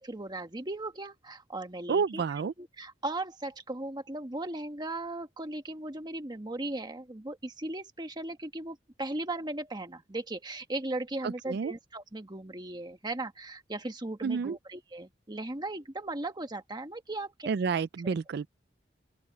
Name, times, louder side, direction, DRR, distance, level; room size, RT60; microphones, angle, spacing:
voice 1, 0.0-17.5 18.0-18.1, right 2 dB, 25° right, 1.4 m, -37 dB
voice 2, 1.9-2.5 11.2-11.7 14.2-14.6 17.5-18.5, right 5 dB, 65° right, 0.4 m, -29 dB
open air
head